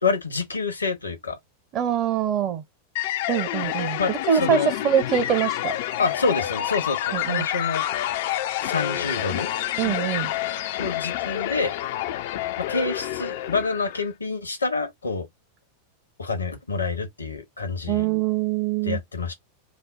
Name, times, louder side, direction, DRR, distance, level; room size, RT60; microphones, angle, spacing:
voice 1, 0.0-1.4 4.0-4.7 6.0-8.1 8.6-9.5 10.8-11.8 12.6-15.3 16.2-18.1 18.8-19.3, left 4 dB, 75° left, 0.8 m, -27 dB
voice 2, 1.7-2.6 3.3-4.6 4.8-5.7 7.1-7.5 9.8-10.3 17.9-19.0, right 9 dB, 35° right, 0.8 m, -24 dB
sound 1, 3.0-14.1, left 13 dB, 50° left, 0.4 m, -28 dB
3.2 x 2.0 x 3.9 m
figure-of-eight pair, 90°, 0 cm